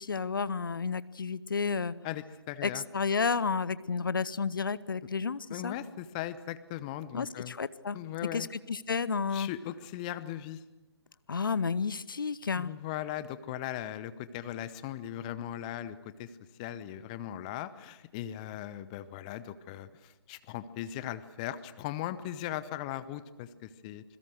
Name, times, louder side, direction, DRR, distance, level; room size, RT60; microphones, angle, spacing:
voice 1, 0.0-1.9 2.6-5.7 7.1-8.0 8.3-9.5 11.3-12.7, left 5 dB, 50° left, 18 dB, 0.8 m, -31 dB
voice 2, 2.0-2.8 5.5-7.6 7.9-8.5 9.3-10.6 12.5-16.3 16.6-24.0, left 12 dB, 15° left, 15 dB, 0.7 m, -38 dB
27.0 x 22.0 x 6.5 m, 1.1 s
figure-of-eight pair, 140°, 14 cm